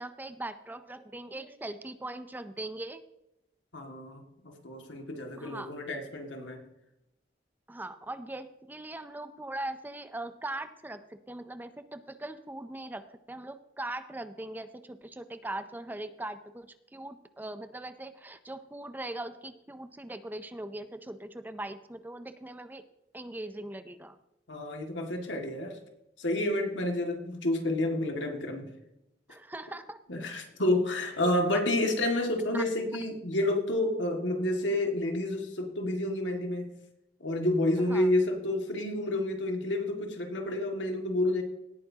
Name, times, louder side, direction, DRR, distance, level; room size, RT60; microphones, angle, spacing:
voice 1, 0.0-3.0 5.4-5.7 7.7-22.8 23.1-24.2 29.3-30.0 32.5-32.6 37.9-38.1, right 1 dB, 10° right, 10 dB, 0.5 m, -40 dB
voice 2, 3.7-6.6 24.5-25.8 26.2-28.7 30.1-36.7 37.2-41.4, left 1 dB, 85° left, 3 dB, 2.0 m, -29 dB
18.0 x 9.1 x 2.8 m, 0.85 s
head